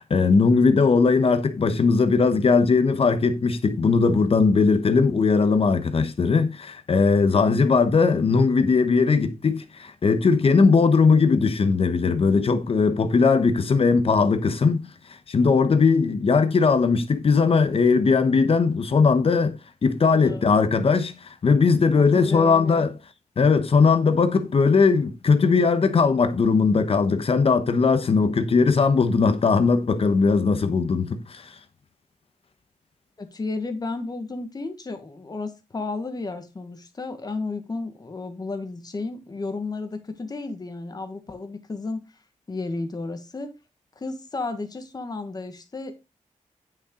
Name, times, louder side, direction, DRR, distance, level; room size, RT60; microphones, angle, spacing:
voice 1, 0.0-14.8 15.3-19.6 19.8-22.9 23.4-31.5, left 4 dB, 45° left, 1.0 m, -19 dB
voice 2, 20.1-20.5 22.0-22.9 33.2-42.0 42.5-43.5 43.9-45.9, left 3 dB, 30° left, 1.5 m, -33 dB
9.3 x 5.8 x 3.9 m
wide cardioid pair, 135°, 13 cm